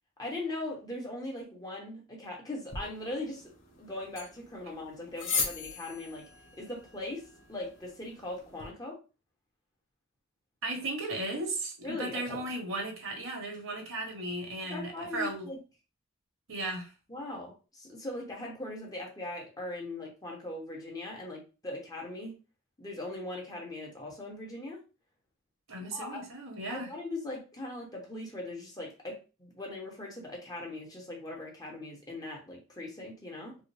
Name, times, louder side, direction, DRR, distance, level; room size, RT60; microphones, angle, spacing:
voice 1, 0.2-3.5 3.8-6.2 6.6-7.2 7.5-9.0 11.8-12.4 14.7-15.6 17.1-22.4 22.8-24.8 25.8-26.2 26.7-33.6, left 2 dB, 20° left, -2 dB, 1.0 m, -40 dB
sound 1, 2.7-8.7, left 4 dB, 70° left, 1.4 m, -39 dB
voice 2, 10.6-15.5 16.5-16.9 25.7-26.9, right 2 dB, 65° right, 2 dB, 1.2 m, -36 dB
4.8 x 2.0 x 3.3 m, 0.32 s
head